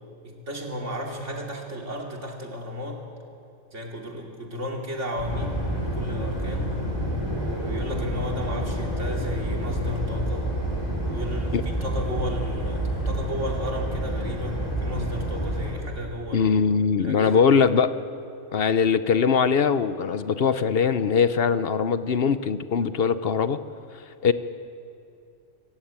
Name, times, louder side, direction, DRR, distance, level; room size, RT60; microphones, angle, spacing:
voice 1, 0.2-3.0 3.7-6.8 7.4-10.5 11.0-16.5 17.0-17.4, left 1 dB, 85° right, 0 dB, 3.1 m, -33 dB
sound 1, 5.2-15.7, right 1 dB, 20° left, 7.0 m, -28 dB
voice 2, 16.3-17.9 18.5-23.6 24.2-24.3, left 6 dB, 60° left, 12 dB, 0.9 m, -21 dB
25.5 x 15.0 x 8.8 m, 2.6 s
omnidirectional pair, 1.2 m